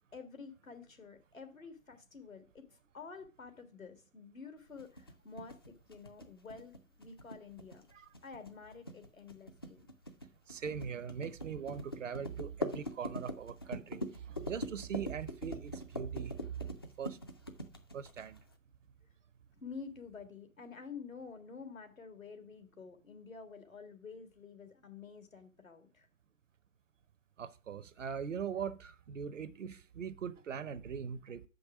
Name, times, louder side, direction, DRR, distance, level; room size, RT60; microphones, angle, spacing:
voice 1, 0.1-2.7 2.9-9.8 19.6-26.1, left 5 dB, 85° left, 1.7 m, -50 dB
sound 1, 4.8-18.5, left 1 dB, 20° left, 0.3 m, -43 dB
voice 2, 10.5-16.3 16.7-17.2 17.9-18.4 27.4-31.4, right 7 dB, 70° right, 0.8 m, -41 dB
6.8 x 5.3 x 5.7 m
figure-of-eight pair, 130°, 39 cm